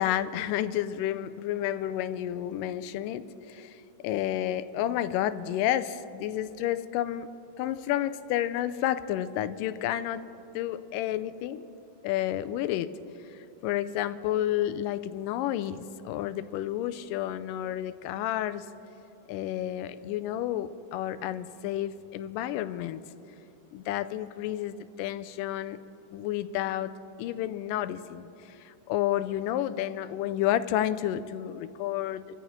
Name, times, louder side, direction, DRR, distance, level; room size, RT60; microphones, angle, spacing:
voice 1, 0.0-7.3 7.6-10.3 10.5-11.7 12.0-12.9 13.3-18.7 19.3-23.0 23.7-25.8 26.1-26.9 27.2-32.2, left 12 dB, 85° left, 12 dB, 2.2 m, -30 dB
26.5 x 15.0 x 3.1 m, 2.9 s
omnidirectional pair, 3.8 m